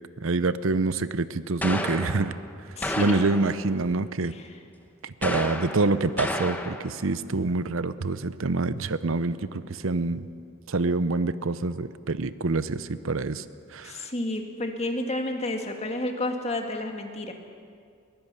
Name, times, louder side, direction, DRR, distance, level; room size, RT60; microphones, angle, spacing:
voice 1, 0.2-2.3 3.0-4.3 5.0-9.4 9.7-10.2 10.7-13.4 13.7-13.9, right 3 dB, 75° right, 14 dB, 0.7 m, -26 dB
sound 1, 1.6-2.4 2.8-3.6 5.2-7.0, left 1 dB, 10° left, 1.0 m, -31 dB
voice 2, 2.8-3.2 4.2-4.6 13.8-17.3, left 1 dB, 30° left, 4 dB, 1.9 m, -31 dB
22.0 x 16.5 x 8.1 m, 2.3 s
head